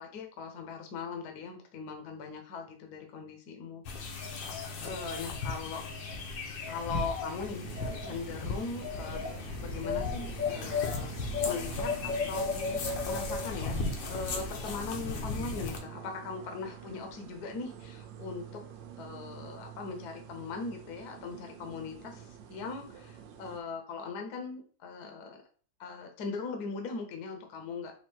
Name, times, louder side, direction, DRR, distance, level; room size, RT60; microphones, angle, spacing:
voice 1, 0.0-4.4 4.8-5.8 6.6-9.3 9.6-18.6 19.0-25.4 25.8-27.9, left 4 dB, 65° left, 4 dB, 1.3 m, -40 dB
sound 1, 3.9-15.8, left 4 dB, 85° left, 1.6 m, -35 dB
sound 2, 7.6-23.6, right 9 dB, 85° right, 1.4 m, -47 dB
4.4 x 2.6 x 4.4 m, 0.41 s
omnidirectional pair, 2.0 m